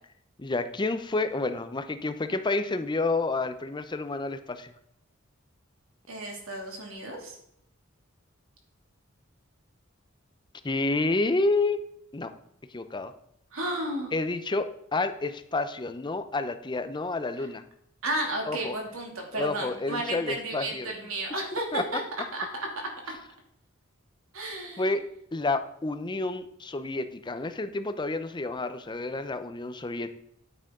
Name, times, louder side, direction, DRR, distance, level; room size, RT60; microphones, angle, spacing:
voice 1, 0.4-4.7 10.6-11.8 12.1-12.3 12.7-13.1 14.1-17.6 18.5-18.7 19.3-20.9 21.7-21.8 24.8-25.0 25.3-30.1, left 2 dB, 20° left, 10 dB, 0.6 m, -29 dB
voice 2, 6.1-7.4 13.5-14.1 18.0-22.0 22.3-23.2 24.3-24.9, right 1 dB, 85° right, 1 dB, 2.6 m, -33 dB
9.2 x 9.1 x 3.7 m, 0.73 s
head